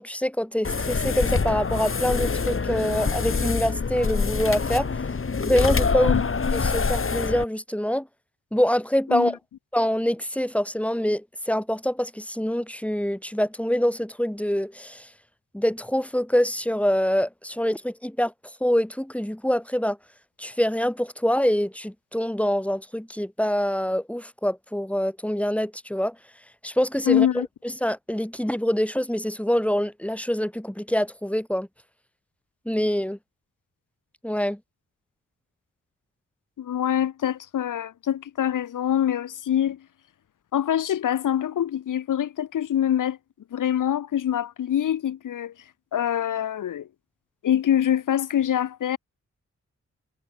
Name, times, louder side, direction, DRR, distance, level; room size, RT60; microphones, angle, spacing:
voice 1, 0.0-4.9 5.4-6.2 6.5-8.1 8.5-9.4 9.7-15.1 15.5-20.0 20.4-26.1 26.6-27.3 27.8-31.7 32.6-33.2 34.2-34.6, equal, 5° left, 6.4 m, -25 dB
sound 1, 0.6-7.4, left 5 dB, 45° left, 2.1 m, -25 dB
voice 2, 27.1-27.5 36.6-39.8 40.5-43.2 43.5-45.5 45.9-46.9 47.4-49.0, left 10 dB, 85° left, 2.5 m, -24 dB
supercardioid pair, 45°, 30 cm